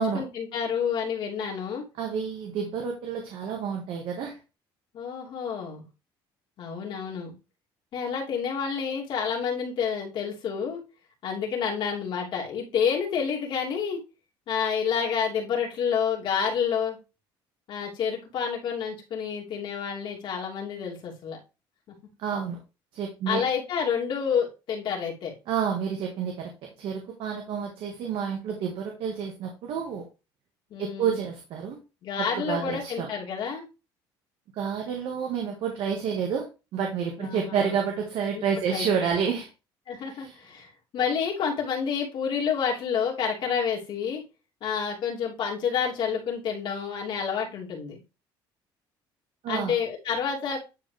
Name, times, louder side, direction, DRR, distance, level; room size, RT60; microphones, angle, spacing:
voice 1, 0.0-1.8 4.9-5.8 6.6-7.3 7.9-10.8 11.2-14.0 14.5-17.0 17.7-21.4 21.9-22.0 23.3-25.3 30.7-31.2 32.0-33.7 37.2-37.7 38.3-38.4 38.7-39.1 39.9-40.7 40.9-44.2 44.6-48.0 49.5-50.6, left 7 dB, 60° left, -1 dB, 2.9 m, -29 dB
voice 2, 2.0-4.4 22.2-22.6 22.9-23.4 25.5-26.5 26.8-30.0 30.8-31.8 32.2-33.1 34.6-36.5 36.7-39.5 40.1-40.3 49.4-49.7, right 7 dB, 65° right, 1 dB, 1.7 m, -29 dB
10.5 x 4.3 x 3.4 m, 0.29 s
cardioid pair, 120°, 9 cm